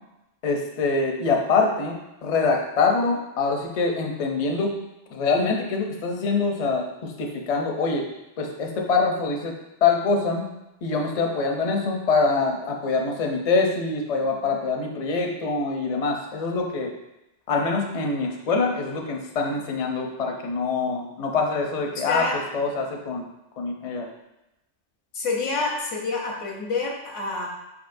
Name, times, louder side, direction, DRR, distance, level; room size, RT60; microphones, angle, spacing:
voice 1, 0.4-2.0 2.2-4.7 5.1-8.0 8.4-9.5 9.8-10.4 10.8-16.9 17.5-22.2 22.5-23.3 23.6-24.1, left 4 dB, 45° left, 1 dB, 0.6 m, -24 dB
voice 2, 22.1-22.4 25.1-27.5, left 3 dB, 90° left, -1 dB, 1.3 m, -27 dB
4.9 x 4.3 x 2.5 m, 0.91 s
omnidirectional pair, 1.2 m